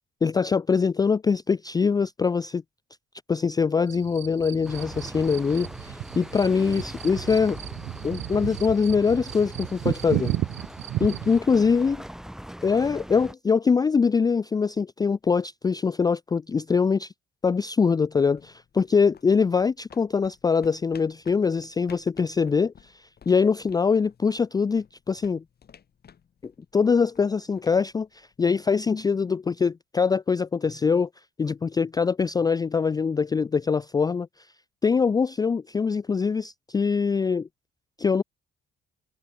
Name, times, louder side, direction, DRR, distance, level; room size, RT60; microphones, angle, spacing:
voice 1, 0.2-2.6 3.3-7.6 8.0-10.4 11.0-12.0 12.6-17.1 17.4-25.4 26.4-31.1 31.4-34.3 34.8-37.5 38.0-38.2, left 5 dB, 20° left, 0.3 m, -23 dB
sound 1, 3.9-11.4, right 14 dB, 70° right, 0.5 m, -33 dB
sound 2, 4.6-13.3, equal, ahead, 1.7 m, -41 dB
sound 3, 18.0-28.7, left 7 dB, 50° left, 6.9 m, -55 dB
cardioid pair, 90°, 20 cm